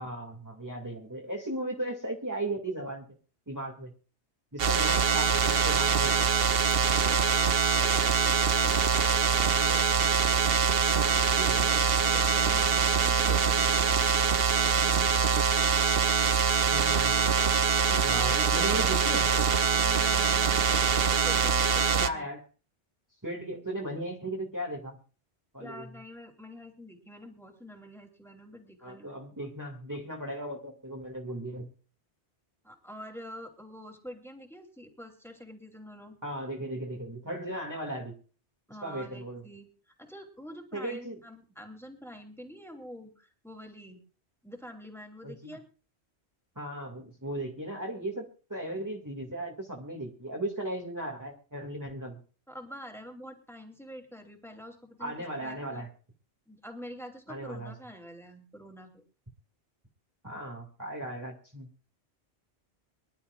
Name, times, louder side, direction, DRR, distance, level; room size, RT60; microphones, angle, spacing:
voice 1, 0.0-3.1 3.5-3.9 4.5-6.3 11.0-11.8 16.7-17.3 17.9-19.3 22.0-22.4 23.2-25.0 25.5-25.8 28.8-31.7 36.2-38.1 38.8-39.4 40.7-41.2 45.2-45.6 46.6-52.2 55.0-55.9 57.3-57.7 60.2-61.7, right 1 dB, 15° right, -1 dB, 2.2 m, -36 dB
sound 1, 4.6-22.1, right 6 dB, 60° right, 1.0 m, -24 dB
voice 2, 7.7-9.9 11.6-15.4 18.1-18.9 19.7-22.3 25.6-29.1 32.6-36.2 38.7-39.7 40.0-44.0 44.4-45.6 52.5-55.8 56.5-59.0, equal, ahead, 4 dB, 3.0 m, -46 dB
25.0 x 12.0 x 2.5 m, 0.37 s
omnidirectional pair, 1.1 m